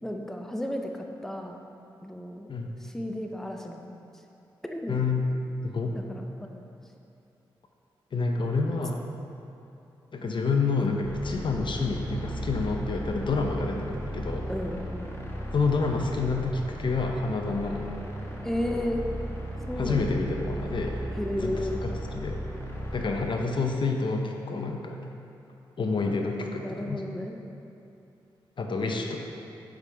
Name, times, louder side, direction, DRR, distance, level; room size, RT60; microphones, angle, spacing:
voice 1, 0.0-1.6 2.0-2.5 2.8-4.0 4.6-5.0 5.9-6.6 14.5-15.2 18.4-19.0 19.7-20.3 21.2-21.9 26.6-27.4, left 1 dB, 5° left, 3 dB, 0.7 m, -33 dB
voice 2, 4.9-5.3 5.6-5.9 8.1-9.0 10.1-14.5 15.5-18.0 19.8-21.0 21.4-21.6 22.1-22.4 22.9-25.0 25.8-27.0 28.6-29.2, left 4 dB, 55° left, 3 dB, 0.7 m, -28 dB
sound 1, 11.0-23.3, equal, 25° left, 1.4 m, -36 dB
8.0 x 5.0 x 3.4 m, 2.7 s
supercardioid pair, 45°, 10 cm